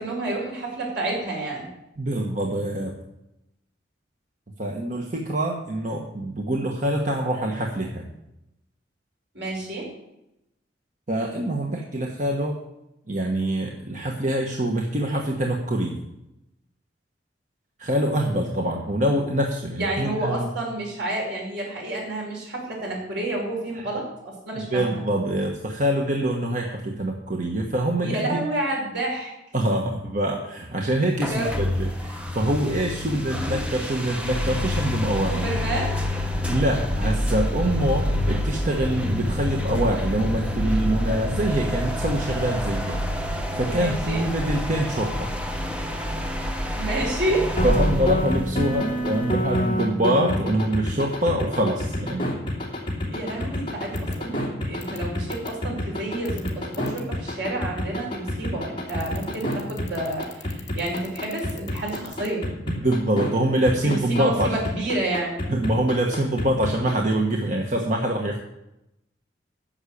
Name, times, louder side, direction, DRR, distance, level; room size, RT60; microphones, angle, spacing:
voice 1, 0.0-1.7 9.3-9.9 19.8-25.0 28.0-29.3 31.3-31.5 35.3-36.0 43.6-44.2 46.8-47.5 53.1-62.5 63.8-65.4, right 2 dB, 70° right, -2 dB, 5.3 m, -29 dB
voice 2, 2.0-2.9 4.6-8.1 11.1-12.6 13.1-16.0 17.8-20.5 23.7-23.8 24.7-28.4 29.5-35.5 36.5-43.0 43.6-45.3 47.6-52.3 62.7-64.6 65.5-68.4, right 1 dB, 45° right, 1 dB, 1.2 m, -25 dB
sound 1, 31.2-49.7, left 1 dB, 5° right, 1.0 m, -27 dB
sound 2, 47.6-63.3 63.7-67.1, left 1 dB, 30° left, 2.8 m, -28 dB
sound 3, 54.0-54.1 54.8-55.0 55.3-55.5 56.2-57.0 58.9-62.3, left 14 dB, 70° left, 2.4 m, -42 dB
10.0 x 7.3 x 8.4 m, 0.89 s
head